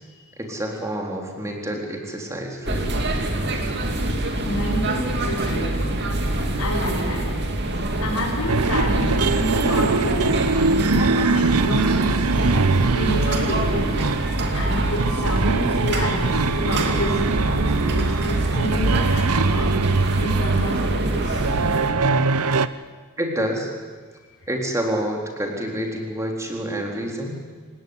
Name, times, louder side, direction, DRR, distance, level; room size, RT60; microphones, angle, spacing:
voice 1, 0.4-3.0 23.2-23.7 24.5-27.4, right 1 dB, 15° right, 1 dB, 4.1 m, -28 dB
sound 1, 2.6-21.9, right 1 dB, 50° right, 2.8 m, -25 dB
voice 2, 4.5-5.7 6.6-7.2 8.0-10.4 10.7-12.2 12.9-14.0 14.5-19.7 20.2-21.5, equal, 85° left, -6 dB, 5.6 m, -29 dB
sound 2, 8.5-22.7, right 4 dB, 85° right, 0.9 m, -23 dB
27.5 x 17.5 x 9.8 m, 1.5 s
head